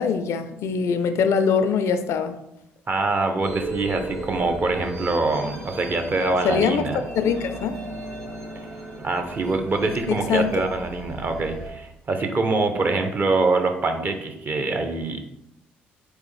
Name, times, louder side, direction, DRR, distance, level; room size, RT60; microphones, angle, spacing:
voice 1, 0.0-2.3 6.4-7.8 10.1-10.7, left 6 dB, 65° left, 9 dB, 0.4 m, -23 dB
voice 2, 2.9-7.0 9.0-15.3, right 3 dB, 40° right, 6 dB, 0.7 m, -24 dB
sound 1, 3.4-11.7, right 1 dB, 70° right, 1.3 m, -36 dB
3.6 x 3.3 x 3.1 m, 0.81 s
hypercardioid pair, 55°, 5 cm